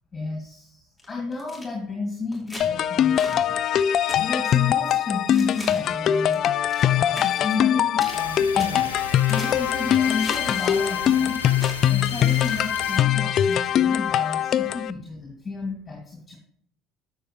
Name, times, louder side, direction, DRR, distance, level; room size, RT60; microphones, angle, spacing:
voice 1, 0.1-3.6 4.2-6.7 6.9-8.9 9.3-11.4 11.9-16.4, left 3 dB, 25° left, 0 dB, 2.4 m, -32 dB
sound 1, 1.0-1.6 2.3-2.7 3.1-3.4 4.1-4.6 5.3-6.0 6.3-6.9 7.2-7.6 8.0-8.2 8.6-9.7 10.2-11.0 11.6-11.8 12.2-12.7 13.3-13.6, left 1 dB, ahead, 3.2 m, -40 dB
sound 2, 2.6-14.9, left 10 dB, 50° left, 0.4 m, -22 dB
sound 3, 8.0-13.0, left 3 dB, 90° left, 0.8 m, -36 dB
11.0 x 7.0 x 3.2 m, 0.64 s
figure-of-eight pair, 65°, 0 cm